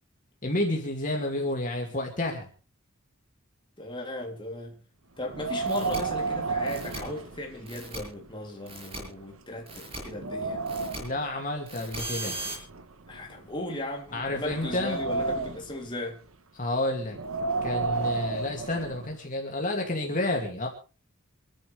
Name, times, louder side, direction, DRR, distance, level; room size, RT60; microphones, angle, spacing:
voice 1, 0.4-2.5 11.0-12.4 14.1-15.0 16.6-17.2 17.6-20.7, left 1 dB, 40° left, 2.5 m, -30 dB
voice 2, 3.8-4.8 5.2-10.6 13.1-16.2, left 1 dB, 25° left, 3.1 m, -37 dB
Wind, 5.2-7.9 8.2-8.3 9.0-9.1 9.6-11.2 12.1-13.6 14.2-15.8 17.0-19.2, right 4 dB, 80° right, 1.2 m, -32 dB
sound 1, 5.7-6.0 6.7-7.0 7.7-8.0 8.7-9.0 9.7-10.0 10.7-11.0 11.7-12.5, right 2 dB, 30° right, 6.5 m, -37 dB
27.5 x 11.0 x 3.4 m
head